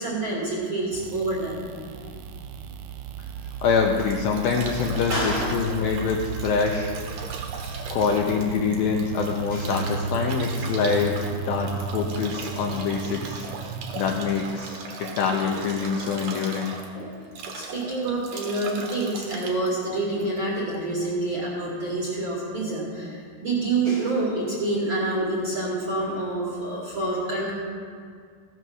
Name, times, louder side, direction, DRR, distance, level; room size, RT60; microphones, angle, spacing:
voice 1, 0.0-1.6 5.1-5.6 9.5-9.7 16.0-16.2 16.9-17.1 17.5-27.5, right 2 dB, 40° right, -6 dB, 2.1 m, -27 dB
sound 1, 0.9-14.2, right 5 dB, 85° right, 2.8 m, -34 dB
Bathtub (filling or washing) / Drip / Trickle dribble, 3.5-20.7, right 4 dB, 65° right, 2.3 m, -38 dB
voice 2, 3.6-6.9 7.9-13.5 14.0-16.8 18.4-18.5 19.9-20.0, left 5 dB, 85° left, 0 dB, 2.1 m, -25 dB
15.5 x 6.5 x 6.3 m, 2.1 s
omnidirectional pair, 5.0 m